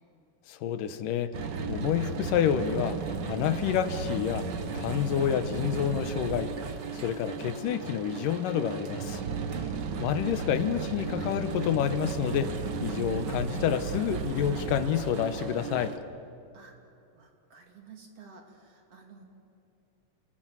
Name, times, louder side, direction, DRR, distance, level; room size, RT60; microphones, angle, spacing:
voice 1, 0.5-1.3 1.7-3.0 3.3-4.5 4.7-6.5 7.0-9.2 10.0-12.5 12.8-15.9, left 9 dB, 85° left, 11 dB, 2.6 m, -28 dB
sound 1, 1.3-16.0, right 5 dB, 70° right, 1.0 m, -34 dB
voice 2, 9.5-9.8 16.5-16.7 17.1-19.3, right 6 dB, 50° right, 2 dB, 3.4 m, -49 dB
29.5 x 19.5 x 7.6 m, 2.7 s
omnidirectional pair, 3.8 m